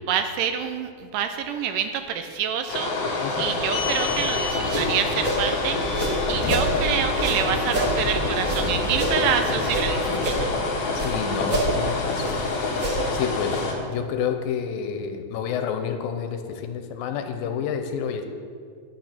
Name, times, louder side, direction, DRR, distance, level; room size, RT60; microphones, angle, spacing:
voice 1, 0.1-6.0 6.3-10.5, right 8 dB, 80° right, 8 dB, 2.0 m, -27 dB
sound 1, 2.7-13.7, left 3 dB, 60° left, 2.4 m, -27 dB
voice 2, 3.2-3.7 11.0-12.5 13.1-18.3, left 7 dB, 85° left, 6 dB, 2.6 m, -29 dB
sound 2, 3.4-10.3, left 2 dB, 35° left, 2.3 m, -31 dB
sound 3, 4.4-6.7 7.1-9.9 10.1-11.1 11.4-13.2, right 1 dB, 40° right, 1.1 m, -28 dB
9.9 x 9.2 x 5.9 m, 2.1 s
omnidirectional pair, 4.1 m